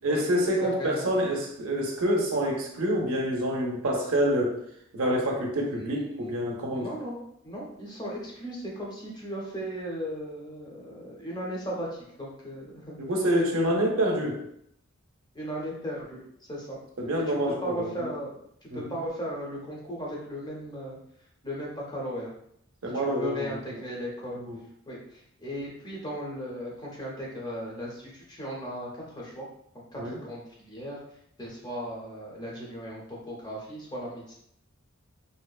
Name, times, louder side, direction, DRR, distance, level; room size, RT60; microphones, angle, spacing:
voice 1, 0.0-4.5 4.9-6.9 13.0-14.4 17.0-18.1 18.7-18.9 22.8-23.8 24.3-24.6 30.0-30.2, equal, 70° right, 0 dB, 0.6 m, -27 dB
voice 2, 0.6-1.1 5.8-6.3 6.7-13.0 13.6-13.8 15.3-16.2 16.5-16.8 17.3-21.0 21.4-22.3 22.9-24.4 24.9-29.5 29.9-30.4 30.7-31.0 31.4-34.3, equal, 20° left, -4 dB, 0.6 m, -37 dB
2.7 x 2.1 x 2.3 m, 0.72 s
head